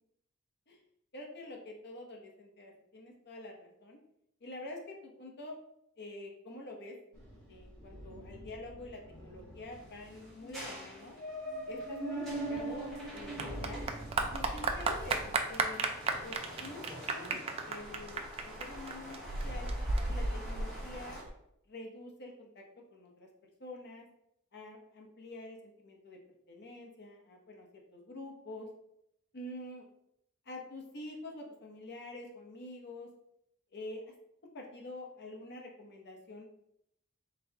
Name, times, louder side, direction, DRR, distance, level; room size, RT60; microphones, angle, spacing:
voice 1, 1.1-4.0 4.4-5.6 6.0-7.0 7.5-11.1 11.7-13.9 14.3-15.8 16.2-19.2 19.4-19.7 20.1-21.2 21.7-22.6 22.9-23.3 23.6-24.1 24.5-26.2 26.5-28.7 29.3-29.9 30.5-33.1 33.7-34.0 34.5-36.5, left 2 dB, 50° left, 0 dB, 0.8 m, -47 dB
sound 1, 7.1-15.3, right 1 dB, 20° left, 1.4 m, -43 dB
sound 2, 9.7-21.2, equal, ahead, 1.1 m, -49 dB
Clapping / Applause, 12.3-21.3, right 3 dB, 25° right, 0.3 m, -35 dB
4.1 x 3.2 x 2.7 m, 0.77 s
head